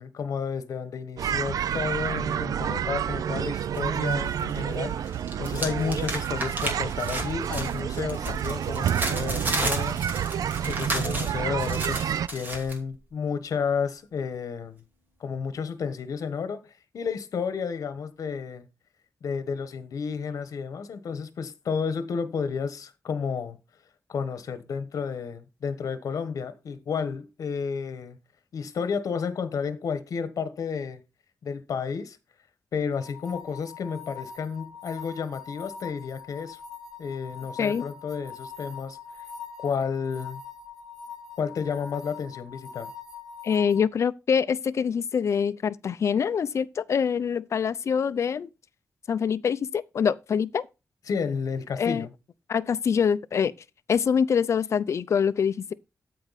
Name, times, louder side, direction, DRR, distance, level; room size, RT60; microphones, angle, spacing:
voice 1, 0.0-4.9 5.4-10.0 10.6-14.8 15.2-18.7 19.2-23.6 24.1-28.2 28.5-31.0 31.4-32.2 32.7-36.6 37.0-39.0 39.6-40.4 41.4-42.9 51.1-52.1, left 6 dB, 70° left, 1.2 m, -31 dB
sound 1, 1.2-12.3, right 9 dB, 90° right, 0.4 m, -29 dB
sound 2, 3.7-4.6 4.9-12.8, right 1 dB, 30° right, 2.7 m, -33 dB
sound 3, 32.9-43.8, left 6 dB, 10° left, 3.8 m, -43 dB
voice 2, 43.4-48.5 49.1-50.7 51.8-52.1 52.5-53.5 53.9-55.7, left 7 dB, 55° left, 0.5 m, -25 dB
13.0 x 4.7 x 4.1 m
wide cardioid pair, 180°, 6 cm